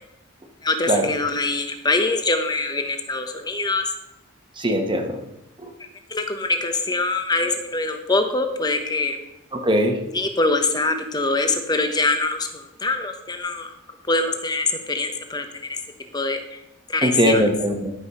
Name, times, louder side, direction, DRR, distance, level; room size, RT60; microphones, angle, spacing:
voice 1, 0.6-3.9 6.1-9.2 10.1-13.7 14.1-15.4 16.1-16.4 16.9-17.4, left 2 dB, 20° left, 6 dB, 1.0 m, -23 dB
voice 2, 4.6-5.2 9.5-9.9 17.0-17.9, equal, 25° right, 4 dB, 1.3 m, -20 dB
11.5 x 5.6 x 5.6 m, 0.87 s
head